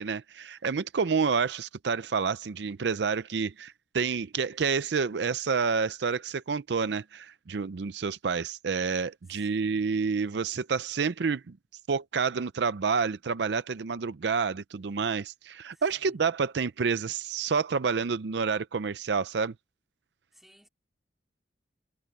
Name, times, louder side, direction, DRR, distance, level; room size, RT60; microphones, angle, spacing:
voice 1, 0.0-11.6 11.9-19.5, right 5 dB, 65° right, 0.5 m, -29 dB
voice 2, 9.3-9.8 15.7-16.2 20.3-20.7, equal, ahead, 3.0 m, -60 dB
head